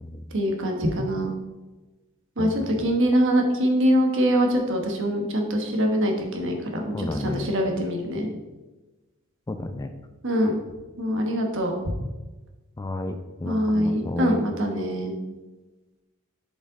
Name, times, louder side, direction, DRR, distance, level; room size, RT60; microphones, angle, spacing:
voice 1, 0.3-1.3 2.4-8.3 10.2-10.5 11.0-11.7 13.4-15.1, equal, 60° right, 2 dB, 1.2 m, -23 dB
voice 2, 6.9-7.5 9.5-9.9 12.8-14.4, left 2 dB, 15° left, 8 dB, 0.3 m, -31 dB
7.4 x 5.2 x 4.0 m, 1.2 s
head